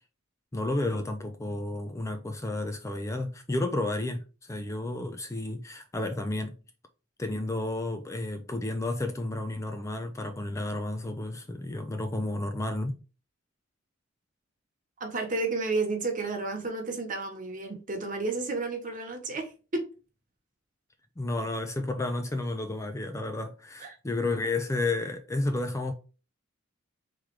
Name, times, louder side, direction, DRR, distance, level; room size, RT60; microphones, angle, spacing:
voice 1, 0.5-6.6 7.2-13.0 21.2-25.9, left 2 dB, 15° left, 0.4 m, -31 dB
voice 2, 15.0-19.8 23.8-24.0, right 3 dB, 40° right, 1.1 m, -31 dB
3.6 x 3.1 x 4.6 m
head